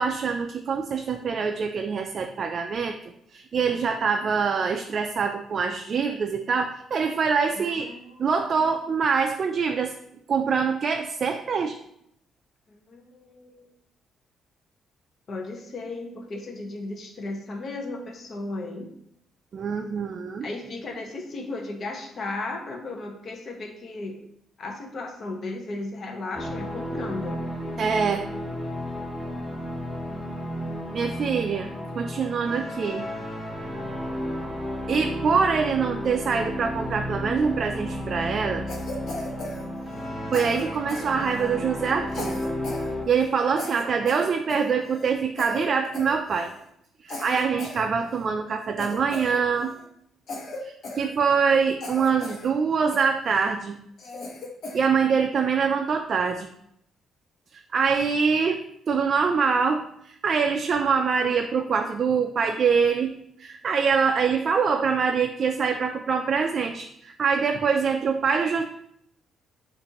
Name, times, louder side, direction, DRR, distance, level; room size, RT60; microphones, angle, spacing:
voice 1, 0.0-3.0 3.3-7.9 8.2-9.9 10.3-11.8 19.5-20.5 27.8-28.3 30.9-31.7 32.0-33.1 34.9-38.7 40.3-42.4 43.1-46.5 47.0-49.7 50.6-53.8 54.7-56.5 57.5-58.6 58.9-63.1 63.4-68.6, right 5 dB, 50° right, 4 dB, 0.3 m, -24 dB
voice 2, 7.6-8.6 12.7-13.7 15.3-18.9 20.4-24.2 24.6-27.4, left 2 dB, 50° left, 3 dB, 0.8 m, -35 dB
sound 1, 26.3-43.0, equal, 20° left, 1.2 m, -33 dB
Cough, 38.7-40.1 40.3-41.6 42.1-42.9 43.1-43.3 43.6-45.1 45.4-45.7 45.9-46.6 47.1-48.3 48.8-49.8 50.3-51.5 51.8-52.5 52.9-53.5 54.0-54.9, left 2 dB, 65° left, 1.0 m, -37 dB
6.9 x 2.5 x 2.9 m, 0.73 s
cardioid pair, 90°, 0 cm